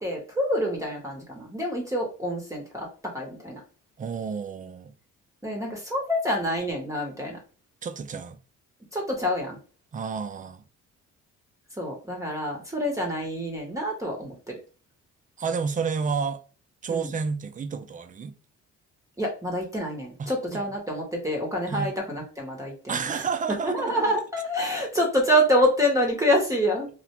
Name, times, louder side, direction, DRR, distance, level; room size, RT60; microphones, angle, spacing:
voice 1, 0.0-3.6 5.4-7.4 8.9-9.6 11.8-14.6 16.9-17.1 19.2-23.3 23.6-26.9, equal, 10° right, 0.7 m, -27 dB
voice 2, 4.0-4.9 7.8-8.4 9.9-10.6 15.4-16.4 16.8-18.3 20.2-20.6 21.7-21.9 22.9-24.0, right 5 dB, 25° right, 0.4 m, -30 dB
2.4 x 2.1 x 2.8 m
cardioid pair, 90°, 30 cm